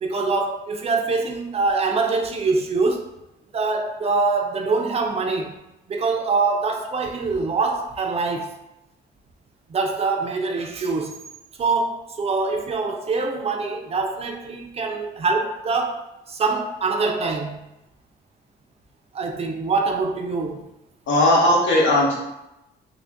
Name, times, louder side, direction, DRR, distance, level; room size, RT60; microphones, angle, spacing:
voice 1, 0.0-3.0 3.5-5.6 5.9-8.5 9.7-11.2 11.6-16.0 16.3-17.6 19.1-20.7, right 4 dB, 35° right, 3 dB, 0.4 m, -24 dB
voice 2, 21.1-22.1, left 1 dB, 85° left, -3 dB, 1.1 m, -17 dB
3.2 x 2.5 x 3.5 m, 0.91 s
wide cardioid pair, 165°, 19 cm